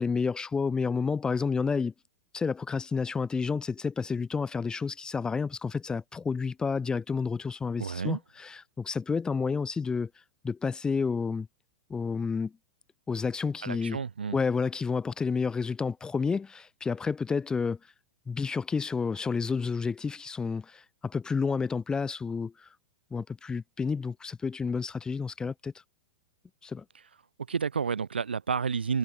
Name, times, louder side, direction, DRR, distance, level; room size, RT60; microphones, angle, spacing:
voice 1, 0.0-1.9 2.3-10.1 10.4-11.5 11.9-12.5 13.1-14.0 14.3-17.8 18.3-22.7 23.1-25.7 26.6-26.8, left 5 dB, 15° left, 0.6 m, -30 dB
voice 2, 7.8-8.2 13.6-14.4 27.5-29.0, right 6 dB, 90° right, 3.7 m, -30 dB
hypercardioid pair, 110°, 5 cm